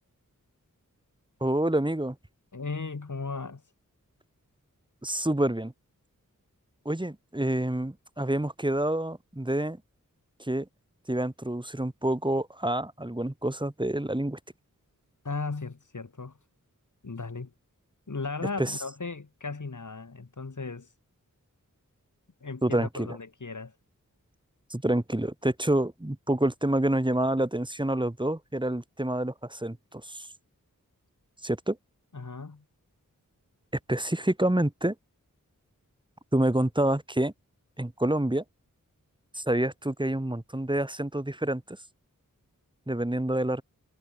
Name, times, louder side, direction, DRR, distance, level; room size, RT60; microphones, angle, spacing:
voice 1, 1.4-2.2 5.0-5.7 6.9-9.8 10.4-10.7 11.1-14.4 18.6-18.7 22.6-23.1 24.7-30.3 31.4-31.8 33.9-34.9 36.3-37.3 37.8-38.4 39.4-41.8 42.9-43.6, right 1 dB, 15° right, 3.6 m, -27 dB
voice 2, 2.5-3.6 15.2-16.4 17.0-17.5 18.1-20.9 22.4-23.7 32.1-32.6, left 4 dB, 65° left, 6.6 m, -36 dB
wide cardioid pair, 70°, 33 cm